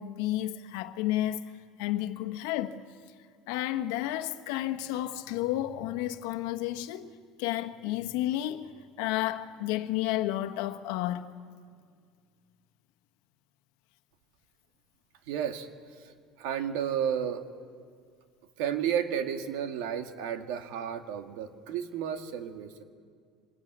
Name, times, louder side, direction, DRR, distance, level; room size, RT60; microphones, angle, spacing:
voice 1, 0.0-1.5 1.8-2.8 3.5-7.1 7.4-8.7 9.0-11.3, left 14 dB, 75° left, 1.3 m, -31 dB
voice 2, 15.3-15.7 16.0-17.4 18.6-22.8, right 9 dB, 75° right, 2.0 m, -32 dB
25.5 x 21.0 x 9.5 m
cardioid pair, 165°, 0 cm